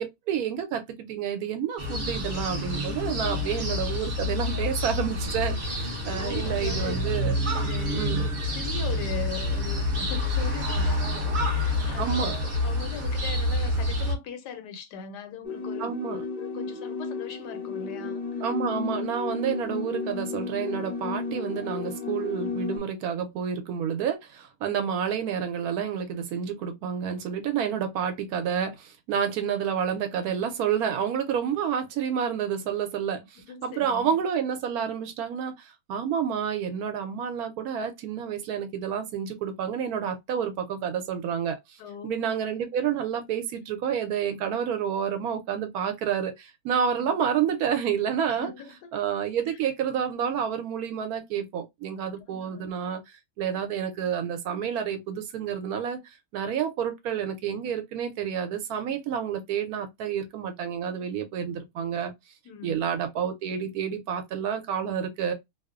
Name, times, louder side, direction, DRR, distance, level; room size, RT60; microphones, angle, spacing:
voice 1, 0.0-7.4 7.9-8.2 12.0-12.3 15.8-16.2 18.4-48.5 48.9-53.0 53.4-62.1 62.6-65.3, right 8 dB, 70° right, 1.0 m, -29 dB
sound 1, 1.8-14.1, left 1 dB, 50° right, 0.6 m, -28 dB
voice 2, 6.1-7.0 7.5-18.4 33.4-34.2 41.8-42.2 46.9-47.2 48.3-48.9 49.5-49.6 52.2-52.7 62.4-62.9, left 6 dB, 90° left, 1.2 m, -40 dB
sound 2, 15.4-22.8, left 4 dB, 35° left, 0.6 m, -33 dB
2.8 x 2.0 x 2.3 m
omnidirectional pair, 1.7 m